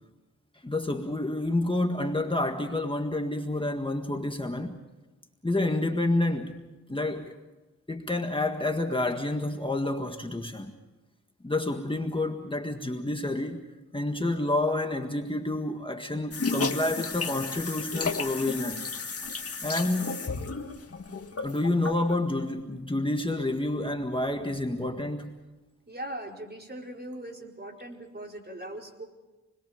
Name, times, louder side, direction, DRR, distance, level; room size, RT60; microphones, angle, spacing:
voice 1, 0.6-4.8 5.4-7.3 7.9-10.7 11.4-13.6 13.9-18.9 19.6-20.1 21.4-25.4, left 2 dB, 15° left, 1.7 m, -29 dB
sound 1, 16.3-22.1, left 4 dB, 50° left, 2.0 m, -33 dB
voice 2, 25.9-29.0, right 1 dB, 35° right, 4.8 m, -40 dB
28.0 x 21.5 x 5.2 m
cardioid pair, 60°, 30 cm